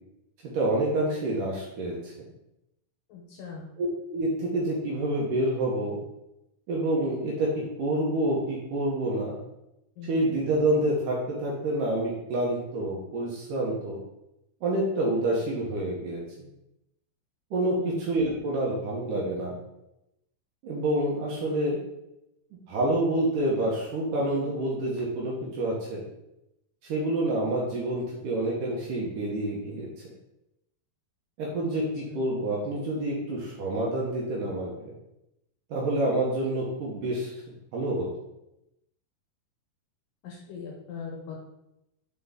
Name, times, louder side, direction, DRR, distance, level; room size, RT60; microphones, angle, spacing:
voice 1, 0.4-2.1 3.8-6.0 6.7-9.4 10.1-14.0 14.6-16.2 17.5-19.5 20.6-21.8 22.7-26.0 26.8-29.9 31.4-34.9 35.7-37.3 37.7-38.1, right 1 dB, 70° right, -3 dB, 2.2 m, -28 dB
voice 2, 3.1-3.6 10.0-10.2 17.8-18.1 32.1-32.2 40.2-41.4, left 5 dB, 75° left, -1 dB, 2.2 m, -40 dB
5.6 x 4.6 x 3.7 m, 0.87 s
omnidirectional pair, 4.6 m